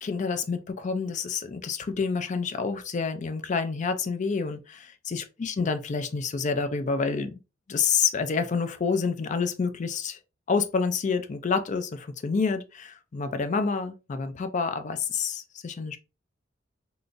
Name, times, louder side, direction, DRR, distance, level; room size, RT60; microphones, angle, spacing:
voice 1, 0.0-7.4 7.7-10.2 10.5-16.0, left 5 dB, 40° left, 0.4 m, -28 dB
3.7 x 2.4 x 2.4 m
head